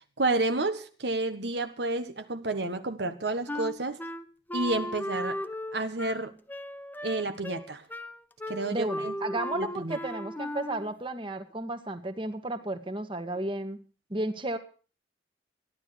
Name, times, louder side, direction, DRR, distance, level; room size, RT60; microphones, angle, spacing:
voice 1, 0.2-4.0 4.5-5.4 5.7-6.3 7.0-7.8 8.5-9.1 9.5-10.0, right 2 dB, 75° right, 8 dB, 1.4 m, -30 dB
Wind instrument woodwind instrument, 3.5-10.9, left 1 dB, 10° left, 0.8 m, -36 dB
voice 2, 8.7-13.8 14.1-14.6, right 1 dB, 30° right, 7 dB, 1.6 m, -33 dB
15.0 x 11.0 x 6.7 m, 0.39 s
head